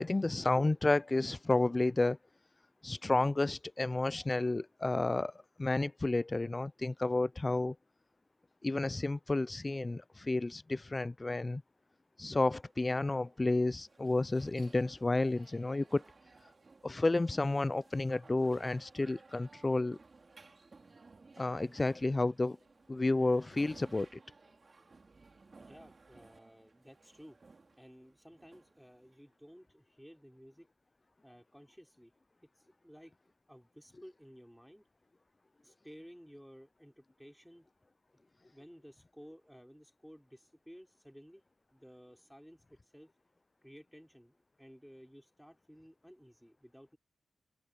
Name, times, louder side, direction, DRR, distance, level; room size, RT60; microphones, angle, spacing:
voice 1, 0.0-2.2 2.8-5.3 5.6-7.8 8.6-11.6 12.2-16.0 16.8-20.0 21.4-22.6 22.9-24.2, left 2 dB, 25° left, 0.3 m, -31 dB
sound 1, 12.6-29.6, right 3 dB, 40° right, 2.8 m, -60 dB
voice 2, 25.5-27.4 27.8-30.7 31.2-32.1 32.6-33.1 33.5-34.8 35.6-37.7 38.1-41.4 41.7-43.1 43.6-47.0, equal, ahead, 4.1 m, -56 dB
wide cardioid pair, 95°, 0 cm